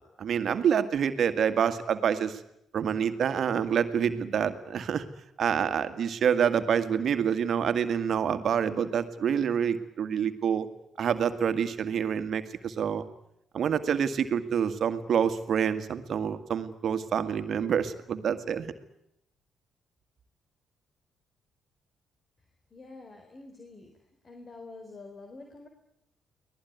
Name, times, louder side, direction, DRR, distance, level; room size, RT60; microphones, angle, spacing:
voice 1, 0.2-2.4 2.7-5.0 5.4-10.7 11.0-13.0 13.5-18.7, right 8 dB, 60° right, 10 dB, 2.0 m, -27 dB
voice 2, 22.7-23.9 24.2-25.7, left 3 dB, 40° left, 5 dB, 4.3 m, -47 dB
24.0 x 19.5 x 9.6 m, 0.81 s
hypercardioid pair, 45°, 0 cm